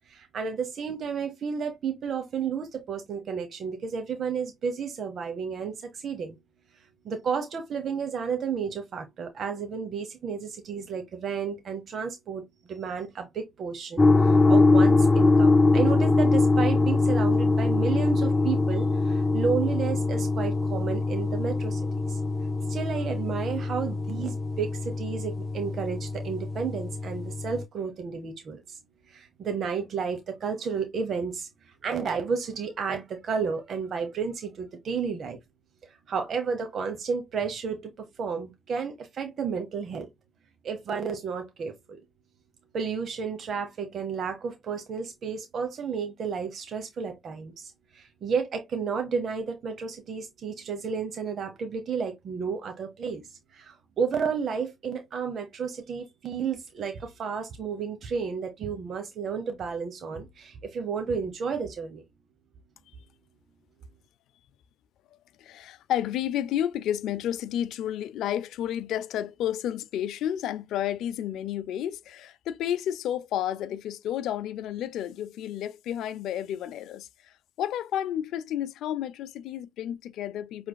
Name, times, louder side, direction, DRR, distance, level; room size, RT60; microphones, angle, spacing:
voice 1, 0.1-6.4 7.0-22.2 22.7-28.8 29.1-35.4 35.8-40.1 40.6-42.0 42.7-62.0, right 6 dB, 60° right, 0.9 m, -32 dB
sound 1, 14.0-27.6, left 3 dB, 25° left, 0.3 m, -23 dB
voice 2, 65.4-80.7, left 11 dB, 85° left, 0.4 m, -31 dB
6.1 x 3.2 x 2.2 m
cardioid pair, 90°, 0 cm